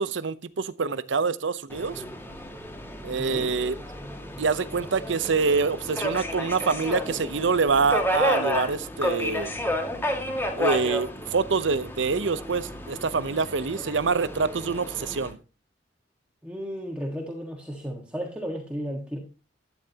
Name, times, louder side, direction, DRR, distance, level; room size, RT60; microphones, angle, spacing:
voice 1, 0.0-2.0 3.0-3.8 4.4-9.5 10.6-15.4, right 4 dB, 85° right, 0.7 m, -26 dB
Subway metro underground, 1.7-15.3, left 1 dB, 10° left, 1.9 m, -31 dB
voice 2, 3.2-3.5 16.4-19.2, equal, 5° right, 1.6 m, -34 dB
12.5 x 9.8 x 2.9 m
head